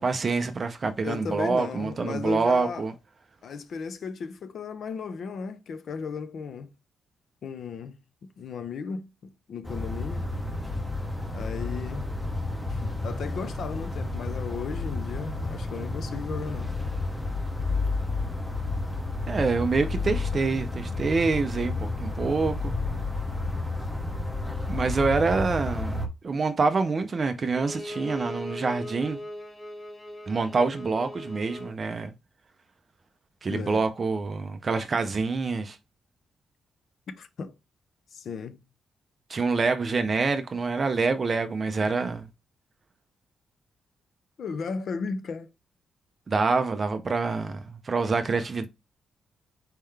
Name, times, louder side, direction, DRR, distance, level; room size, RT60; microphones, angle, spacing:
voice 1, 0.0-2.9 19.3-22.7 24.7-29.2 30.3-32.1 33.4-35.8 39.3-42.3 46.3-48.7, right 4 dB, 30° right, 0.4 m, -26 dB
voice 2, 1.0-2.9 3.4-6.7 7.4-8.0 8.2-10.2 11.3-12.0 12.7-16.8 33.5-33.8 37.1-37.5 38.1-38.6 44.4-45.5, left 5 dB, 55° left, 0.5 m, -35 dB
sound 1, 9.7-26.1, left 2 dB, ahead, 0.7 m, -31 dB
Bowed string instrument, 27.5-31.8, left 1 dB, 30° left, 1.3 m, -39 dB
4.4 x 3.7 x 3.2 m
wide cardioid pair, 165°, 0 cm